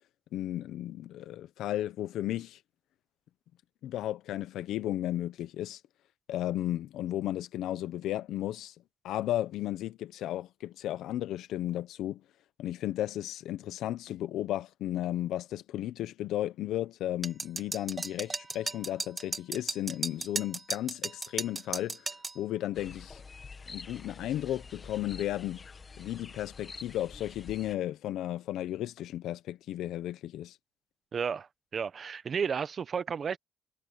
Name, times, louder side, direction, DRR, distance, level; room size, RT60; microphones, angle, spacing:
voice 1, 0.3-2.6 3.8-5.8 6.3-8.7 9.0-12.2 12.6-22.0 22.3-23.2 23.7-25.7 26.0-30.6, left 13 dB, 85° left, 1.0 m, -34 dB
sound 1, 17.2-22.4, right 3 dB, 25° right, 2.1 m, -35 dB
sound 2, 22.8-27.8, left 4 dB, 35° left, 1.7 m, -47 dB
voice 2, 31.1-31.5 31.7-33.4, right 6 dB, 45° right, 1.2 m, -32 dB
cardioid pair, 90°, 0 cm